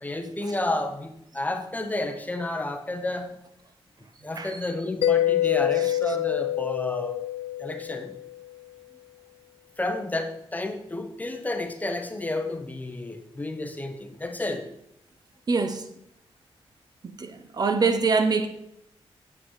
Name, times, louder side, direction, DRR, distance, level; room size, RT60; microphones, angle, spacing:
voice 1, 0.0-3.3 4.2-7.2 7.6-8.1 9.8-14.6, left 2 dB, 15° left, 0.9 m, -31 dB
Mallet percussion, 5.0-8.5, left 13 dB, 85° left, 0.4 m, -26 dB
voice 2, 15.5-15.8 17.2-18.5, right 4 dB, 40° right, 0.8 m, -24 dB
8.8 x 7.3 x 4.8 m
wide cardioid pair, 140°, 10 cm